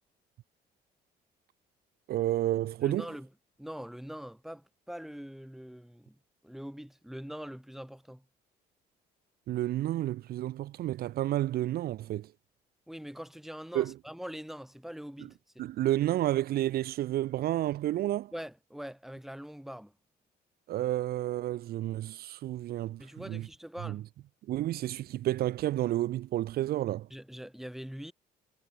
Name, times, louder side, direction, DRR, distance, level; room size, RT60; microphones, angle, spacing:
voice 1, 2.1-3.0 9.5-12.3 13.7-13.9 15.6-18.3 20.7-23.5 23.8-24.0 24.5-27.1, right 14 dB, 65° right, 0.9 m, -30 dB
voice 2, 2.8-3.3 3.6-8.3 12.9-15.7 18.3-19.9 23.0-24.1 27.1-28.1, equal, ahead, 5.5 m, -43 dB
cardioid pair, 110°, 17 cm